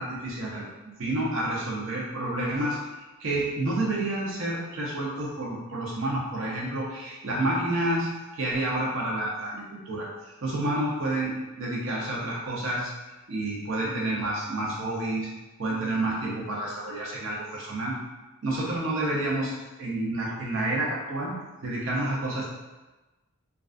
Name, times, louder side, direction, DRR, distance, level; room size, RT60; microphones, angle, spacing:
voice 1, 0.0-2.8 3.2-8.1 8.3-12.9 13.3-15.3 15.6-18.0 18.4-19.5 19.8-21.3 21.6-22.5, right 1 dB, 65° right, -4 dB, 0.6 m, -29 dB
2.3 x 2.3 x 2.4 m, 1.1 s
head